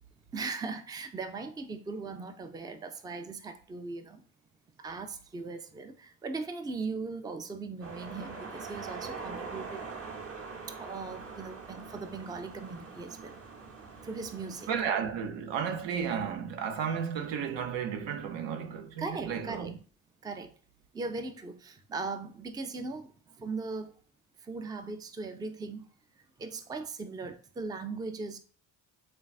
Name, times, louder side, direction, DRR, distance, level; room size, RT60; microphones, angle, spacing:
voice 1, 0.3-4.2 4.8-9.8 10.7-13.4 14.0-14.7 19.0-19.7 20.2-20.5 20.9-23.9 24.4-25.9 26.4-28.4, right 4 dB, 10° right, 0.3 m, -39 dB
sound 1, 7.8-14.9, right 4 dB, 30° right, 0.7 m, -43 dB
voice 2, 14.7-19.7, right 7 dB, 70° right, 0.7 m, -33 dB
3.3 x 2.3 x 2.4 m
supercardioid pair, 55°, 45 cm